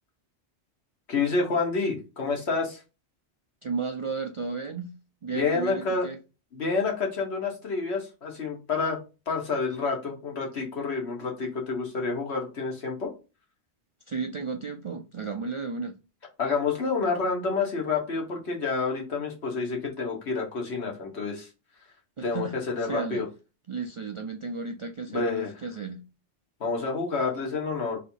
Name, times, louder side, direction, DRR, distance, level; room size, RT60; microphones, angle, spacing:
voice 1, 1.1-2.8 5.3-6.1 6.5-9.0 9.3-13.1 16.4-21.5 22.2-23.3 25.1-25.5 26.6-28.0, left 4 dB, 75° left, 1.5 m, -28 dB
voice 2, 3.6-4.9 5.2-6.2 14.1-15.9 22.2-22.5 22.8-23.2 23.7-26.0, right 4 dB, 50° right, 0.4 m, -33 dB
3.3 x 2.8 x 4.3 m
omnidirectional pair, 1.1 m